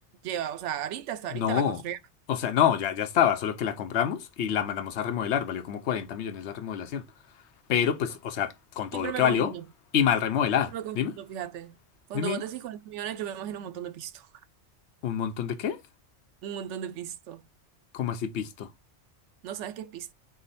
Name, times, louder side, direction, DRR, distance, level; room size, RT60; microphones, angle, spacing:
voice 1, 0.2-2.0 8.9-9.6 10.7-11.8 12.1-14.3 16.4-17.4 19.4-20.1, right 10 dB, 85° right, 0.9 m, -35 dB
voice 2, 1.3-1.8 2.3-7.0 7.7-9.5 9.9-11.1 12.1-12.4 15.0-15.8 17.9-18.7, left 9 dB, 75° left, 0.9 m, -27 dB
4.9 x 2.1 x 4.0 m
omnidirectional pair, 1.2 m